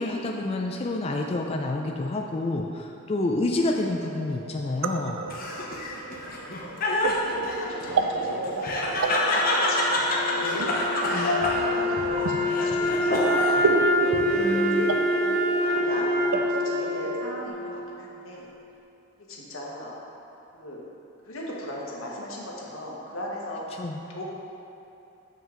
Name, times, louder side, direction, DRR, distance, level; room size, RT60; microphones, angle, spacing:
voice 1, 0.0-5.2 11.1-11.3 14.4-14.9 23.8-24.0, left 2 dB, 30° left, 1 dB, 0.3 m, -28 dB
sound 1, 3.7-17.5, right 4 dB, 75° right, 0.4 m, -31 dB
Laughter, 5.3-13.7 14.1-14.8, left 2 dB, 45° left, 0.8 m, -27 dB
voice 2, 7.0-10.4 10.9-14.4 14.7-14.9 15.6-18.5 19.3-19.9 20.5-20.8 21.2-23.8 24.1-24.2, left 1 dB, 90° left, -3 dB, 1.2 m, -38 dB
Wind instrument woodwind instrument, 9.4-18.4, left 1 dB, 30° right, 1.5 m, -27 dB
7.4 x 5.3 x 3.8 m, 2.8 s
head